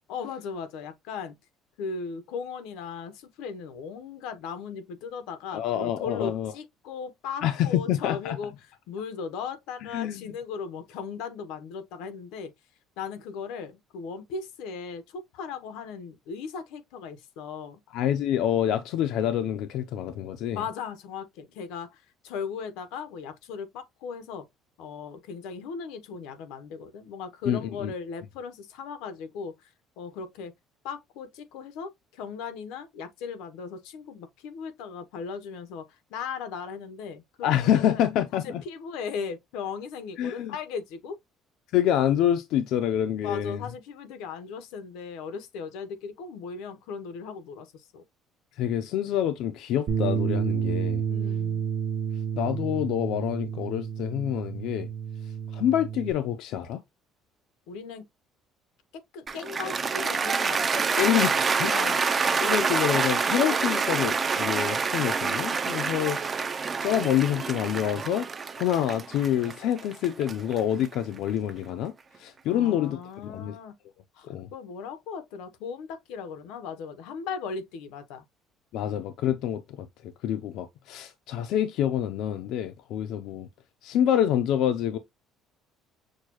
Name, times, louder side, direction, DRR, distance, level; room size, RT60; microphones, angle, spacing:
voice 1, 0.1-1.3 1.8-12.5 13.0-17.8 20.5-24.5 24.8-30.5 30.8-38.1 38.4-41.2 43.2-48.0 51.1-51.7 57.7-58.1 58.9-61.4 61.7-62.1 72.5-73.7 74.1-78.2, left 6 dB, 90° left, 0.8 m, -37 dB
voice 2, 5.5-6.5 7.4-8.4 9.9-10.2 17.9-20.6 27.5-27.9 37.4-38.6 40.2-40.5 41.7-43.6 48.6-51.0 52.4-54.9 55.5-56.8 61.0-61.7 62.4-66.2 66.8-68.3 68.6-71.9 72.2-73.0 73.2-73.6 74.2-74.5 78.7-79.9 80.2-83.5 83.8-85.0, left 10 dB, 60° left, 0.5 m, -27 dB
Bass guitar, 49.9-56.1, right 7 dB, 40° right, 0.9 m, -30 dB
Cheering / Applause, 59.3-71.5, right 5 dB, 20° right, 0.4 m, -27 dB
6.4 x 2.2 x 2.9 m
cardioid pair, 180°, 0 cm